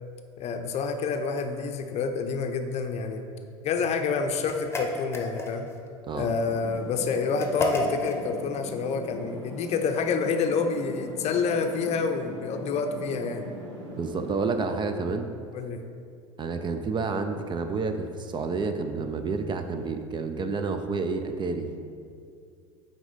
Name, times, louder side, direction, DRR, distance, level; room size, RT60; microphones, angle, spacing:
voice 1, 0.4-3.2 3.6-5.7 6.1-13.5 15.5-15.9, left 5 dB, 45° left, 6 dB, 0.6 m, -28 dB
sound 1, 4.5-5.8 7.4-8.2, left 2 dB, 15° left, 1.0 m, -30 dB
sound 2, 6.5-14.4, equal, 90° right, 1.3 m, -41 dB
voice 2, 14.0-15.3 16.4-21.7, right 4 dB, 30° right, 7 dB, 0.5 m, -29 dB
9.0 x 3.6 x 4.1 m, 2.3 s
hypercardioid pair, 80°, 16 cm